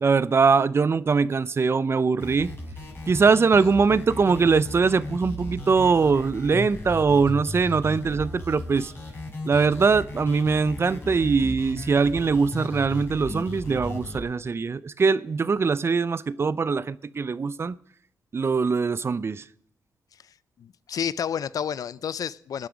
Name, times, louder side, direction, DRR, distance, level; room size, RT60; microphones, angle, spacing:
voice 1, 0.0-2.5 3.1-8.9 9.4-17.8 18.3-19.4, right 5 dB, 40° right, 0.5 m, -22 dB
sound 1, 2.2-14.2, left 2 dB, 35° left, 4.9 m, -36 dB
voice 2, 20.6-22.7, left 8 dB, 60° left, 0.5 m, -30 dB
20.0 x 10.5 x 5.2 m
cardioid pair, 80°, 7 cm